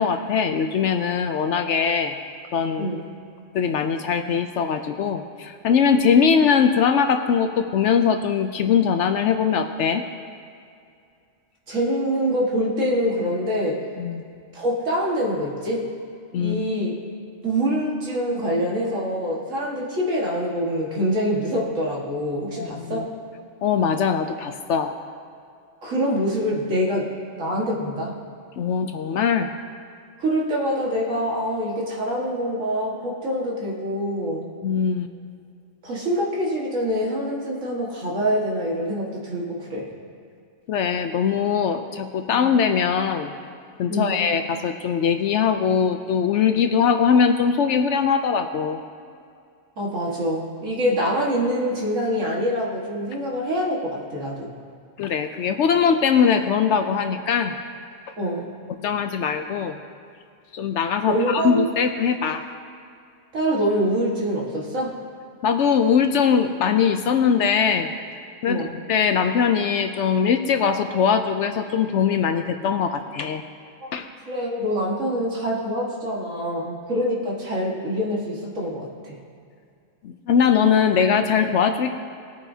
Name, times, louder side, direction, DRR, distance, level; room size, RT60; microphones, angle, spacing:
voice 1, 0.0-2.1 2.5-2.9 3.5-10.0 14.0-14.2 16.3-16.7 22.6-23.0 23.6-24.9 28.6-29.5 34.6-35.1 40.7-43.3 43.8-48.8 55.0-57.6 58.8-59.8 60.5-62.4 65.4-67.9 68.4-73.4 73.9-74.1 80.0-81.9, left 7 dB, 70° left, 7 dB, 0.9 m, -21 dB
voice 2, 2.8-3.1 11.7-13.8 14.5-15.9 16.4-16.9 17.4-23.1 25.8-27.1 27.4-28.1 30.2-34.5 35.8-39.9 42.3-42.4 43.9-44.2 49.8-54.5 58.2-58.5 61.1-61.6 63.3-65.0 68.4-68.8 73.8-73.9 74.3-79.2, equal, 85° right, -4 dB, 2.0 m, -25 dB
19.5 x 9.9 x 2.7 m, 2.3 s
omnidirectional pair, 1.3 m